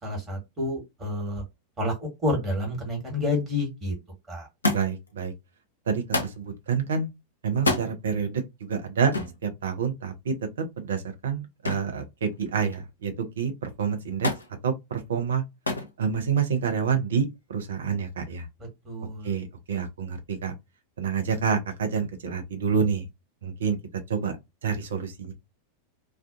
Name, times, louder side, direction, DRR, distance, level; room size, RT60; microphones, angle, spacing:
voice 1, 0.0-1.4 1.8-4.0 4.3-4.5 18.6-19.3, left 2 dB, 20° right, 1.5 m, -29 dB
Thump thud, 4.6-5.1 6.1-6.4 7.5-7.9 9.1-9.4 11.7-12.0 12.3-12.9 14.2-14.5 15.7-15.9 16.9-17.4 18.3-18.4, left 2 dB, 80° left, 0.5 m, -28 dB
voice 2, 4.7-5.3 5.9-7.1 7.4-8.4 8.7-9.1 9.4-10.3 10.8-14.3 14.6-15.4 16.0-18.5 19.2-20.5 21.0-23.1 23.4-23.8 24.1-24.3 24.6-25.3, right 6 dB, 65° right, 0.6 m, -28 dB
2.4 x 2.3 x 2.5 m
figure-of-eight pair, 90°, 0 cm